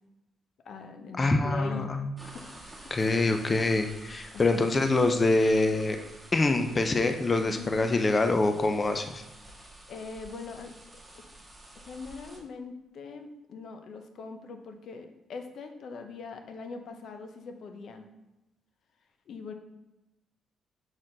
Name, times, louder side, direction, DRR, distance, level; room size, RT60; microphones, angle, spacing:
voice 1, 0.6-2.0 2.2-3.3 4.3-5.0 7.6-7.8 9.5-10.7 11.1-11.3 11.7-18.1 19.3-19.5, left 4 dB, 65° left, 6 dB, 0.7 m, -42 dB
voice 2, 1.2-2.1 2.9-6.0 6.3-9.2, left 2 dB, 30° left, 6 dB, 0.5 m, -25 dB
sound 1, 2.2-12.4, right 1 dB, 5° right, 1.5 m, -49 dB
6.1 x 4.2 x 3.8 m, 0.99 s
cardioid pair, 90°, 0 cm